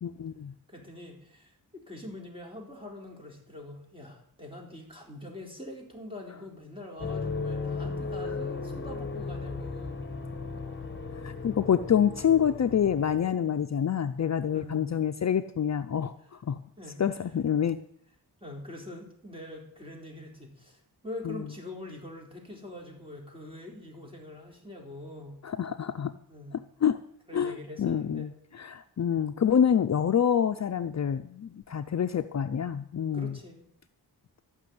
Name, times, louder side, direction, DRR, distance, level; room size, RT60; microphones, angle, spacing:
voice 1, 0.0-0.5 11.1-16.6 17.0-17.8 21.2-21.4 25.4-26.2 26.5-27.0 27.3-28.3 28.5-33.4, left 8 dB, 45° left, 10 dB, 0.5 m, -27 dB
voice 2, 0.7-10.1 14.5-14.9 16.8-17.0 18.4-25.4 26.3-26.6 27.3-28.3 33.1-33.6, left 1 dB, 15° right, 0 dB, 4.0 m, -44 dB
sound 1, 7.0-13.3, left 4 dB, 30° left, 1.3 m, -36 dB
13.5 x 6.1 x 9.4 m, 0.69 s
wide cardioid pair, 115°, 37 cm